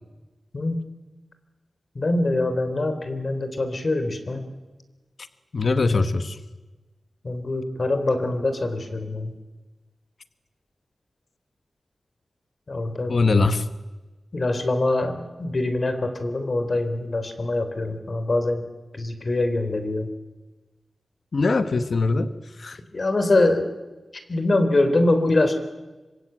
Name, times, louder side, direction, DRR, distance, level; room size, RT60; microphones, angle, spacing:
voice 1, 2.0-4.5 7.2-9.3 12.7-13.1 14.3-18.6 18.9-20.1 22.9-23.7 24.3-25.6, left 2 dB, 45° left, 8 dB, 3.7 m, -24 dB
voice 2, 5.5-6.4 13.1-13.7 21.3-22.8, left 3 dB, 60° left, 10 dB, 1.3 m, -22 dB
25.0 x 23.5 x 9.2 m, 1.2 s
wide cardioid pair, 130°, 0 cm